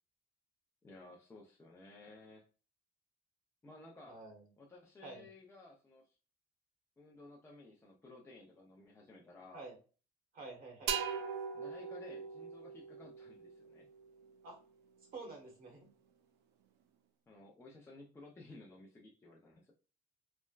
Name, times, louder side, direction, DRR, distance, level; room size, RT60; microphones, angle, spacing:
voice 1, 0.8-2.5 3.6-4.2 4.6-6.2 7.0-9.6 11.5-13.9 17.3-19.7, left 2 dB, 15° left, -2 dB, 0.5 m, -56 dB
voice 2, 4.1-4.4 5.0-5.2 9.5-9.7 10.3-11.0 14.4-14.6 15.1-15.9, right 3 dB, 60° right, 1 dB, 1.2 m, -49 dB
sound 1, 10.9-14.5, right 7 dB, 85° right, 0.4 m, -41 dB
3.2 x 2.1 x 2.3 m, 0.36 s
cardioid pair, 110°, 17 cm